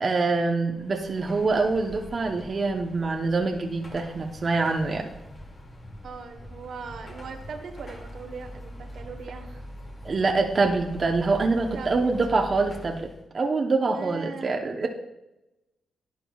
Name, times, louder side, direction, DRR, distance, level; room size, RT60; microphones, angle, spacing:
voice 1, 0.0-5.1 10.0-13.1 13.3-14.9, right 3 dB, 45° right, 2 dB, 0.8 m, -25 dB
Car passing by / Traffic noise roadway noise / Engine, 0.6-13.2, equal, 40° left, 2.2 m, -43 dB
voice 2, 6.0-9.6 11.7-12.1 13.9-14.5, right 5 dB, 70° right, 5 dB, 1.1 m, -40 dB
11.5 x 8.9 x 2.4 m, 0.94 s
cardioid pair, 70°, 0 cm